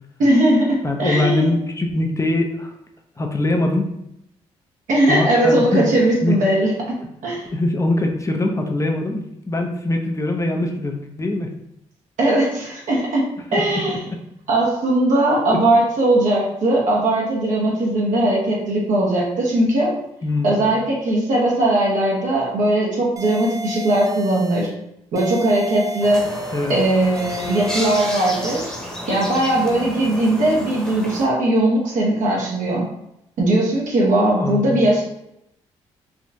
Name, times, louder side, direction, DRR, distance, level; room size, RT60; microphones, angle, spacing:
voice 1, 0.2-1.5 4.9-7.0 7.2-7.5 12.2-13.2 13.5-14.0 14.5-19.9 20.4-24.7 25.1-26.2 26.7-28.8 29.1-32.9 33.4-35.0, right 1 dB, 70° right, -4 dB, 0.9 m, -19 dB
voice 2, 0.8-2.7 3.2-3.9 5.1-5.9 6.2-6.4 7.5-11.5 13.5-13.6 15.5-15.6 20.2-20.7 26.5-26.7 34.4-34.8, left 2 dB, 25° left, 3 dB, 0.6 m, -22 dB
sound 1, 23.2-24.7 25.2-26.7 27.2-28.7, right 1 dB, 25° right, 0.5 m, -32 dB
sound 2, 26.0-31.2, equal, 5° left, 1.0 m, -31 dB
3.5 x 2.4 x 2.7 m, 0.80 s
supercardioid pair, 55°, 14 cm